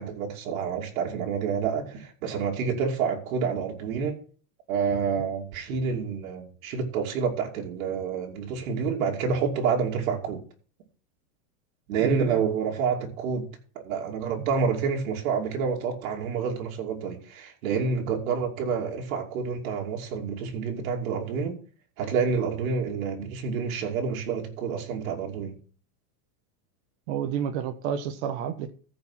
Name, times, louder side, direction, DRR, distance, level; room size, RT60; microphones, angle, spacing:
voice 1, 0.0-4.2 4.7-10.4 11.9-13.5 13.7-21.6 22.0-25.5, right 6 dB, 75° right, 2.8 m, -28 dB
voice 2, 12.0-12.4 14.4-14.5 27.1-28.7, right 8 dB, 55° right, 1.1 m, -30 dB
15.0 x 5.3 x 5.8 m
supercardioid pair, 160°, 42 cm